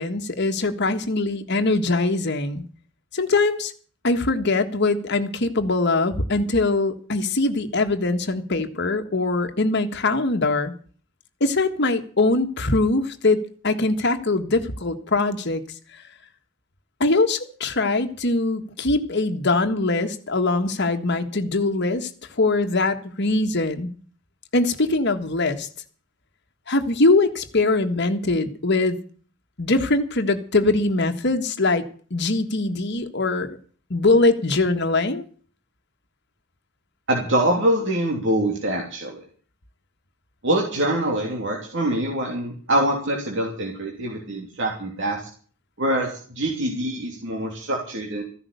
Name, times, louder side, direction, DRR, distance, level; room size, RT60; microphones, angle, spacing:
voice 1, 0.0-2.6 3.1-3.7 4.0-10.7 11.4-15.6 17.0-22.1 22.4-23.9 24.5-25.7 26.7-29.0 29.6-31.8 32.1-33.6 33.9-35.2, left 2 dB, 60° left, 7 dB, 1.6 m, -22 dB
voice 2, 37.1-39.2 40.4-45.2 45.8-48.2, right 1 dB, 65° right, 0 dB, 3.1 m, -24 dB
15.0 x 11.0 x 6.9 m, 0.44 s
head